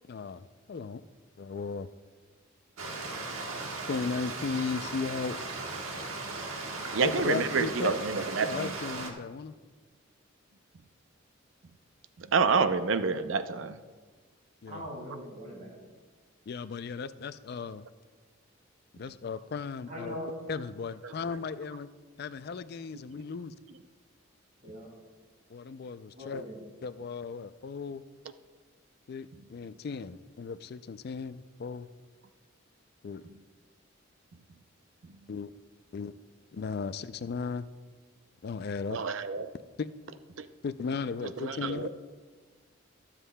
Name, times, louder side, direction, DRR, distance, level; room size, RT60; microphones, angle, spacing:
voice 1, 0.1-1.0 1.4-1.9 3.9-5.4 7.0-8.0 8.4-9.5 14.6-14.9 16.5-17.9 19.0-20.2 20.5-21.9 22.2-23.5 25.5-26.4 26.8-28.0 29.1-31.9 33.0-33.2 35.3-35.5 35.9-36.1 36.5-37.7 38.4-39.0 39.8-39.9 40.6-41.9, left 5 dB, 50° left, 13 dB, 0.3 m, -36 dB
Stream, 2.8-9.1, right 3 dB, 80° right, 1.3 m, -37 dB
voice 2, 6.9-8.7 12.2-13.7 38.9-39.5 40.4-40.5 41.4-41.9, right 5 dB, 65° right, 11 dB, 0.5 m, -28 dB
voice 3, 14.7-15.8 19.9-20.3 24.6-24.9 26.2-26.6, equal, 40° right, -1 dB, 2.5 m, -41 dB
20.5 x 7.4 x 2.2 m, 1.4 s
head